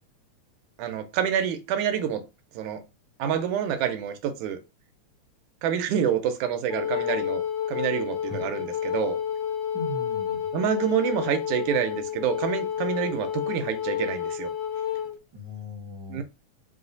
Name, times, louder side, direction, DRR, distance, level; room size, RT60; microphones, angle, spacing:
voice 1, 0.8-2.2 2.6-2.8 3.2-4.6 5.6-7.4 7.7-9.2 10.5-14.5 16.1-16.2, right 9 dB, 85° right, 2.1 m, -27 dB
Wind instrument woodwind instrument, 6.7-15.1, left 9 dB, 75° left, 1.3 m, -30 dB
voice 2, 9.7-10.5 15.3-16.2, left 1 dB, 55° right, 1.2 m, -38 dB
5.1 x 2.1 x 3.8 m
omnidirectional pair, 3.3 m